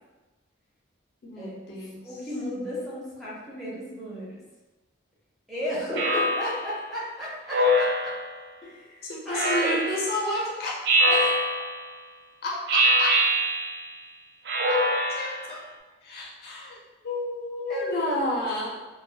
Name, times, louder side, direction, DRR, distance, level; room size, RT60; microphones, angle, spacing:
voice 1, 1.2-2.0 9.1-10.8 12.4-13.2 14.7-15.6 16.0-18.7, left 1 dB, 50° left, -3 dB, 0.5 m, -31 dB
voice 2, 2.0-4.4 5.5-8.1 8.6-9.8 11.1-11.4 17.7-18.4, equal, ahead, -9 dB, 0.5 m, -34 dB
Speech synthesizer, 6.0-6.8 7.5-8.4 9.3-10.2 10.8-11.9 12.7-13.9 14.5-15.5, equal, 55° right, 0.3 m, -24 dB
2.3 x 2.2 x 2.6 m, 1.2 s
head